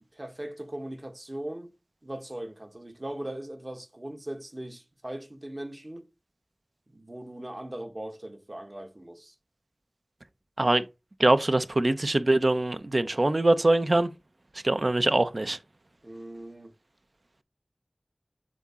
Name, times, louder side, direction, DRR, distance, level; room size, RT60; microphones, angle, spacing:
voice 1, 0.1-1.7 2.0-6.1 6.9-9.3 16.0-16.7, right 1 dB, 40° right, 1.2 m, -39 dB
voice 2, 11.2-14.1 14.6-15.6, right 2 dB, 65° right, 0.7 m, -23 dB
7.7 x 3.7 x 4.3 m
wide cardioid pair, 45°, 0 cm